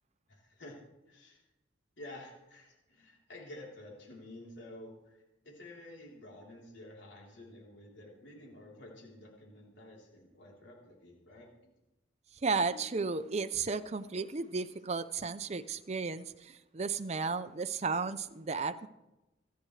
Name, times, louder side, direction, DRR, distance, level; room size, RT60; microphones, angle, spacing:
voice 1, 0.3-0.8 1.1-1.4 2.0-11.7, left 1 dB, 90° left, -2 dB, 3.7 m, -51 dB
voice 2, 12.3-18.9, right 4 dB, 35° right, 10 dB, 0.6 m, -34 dB
26.0 x 10.5 x 3.3 m, 1.0 s
head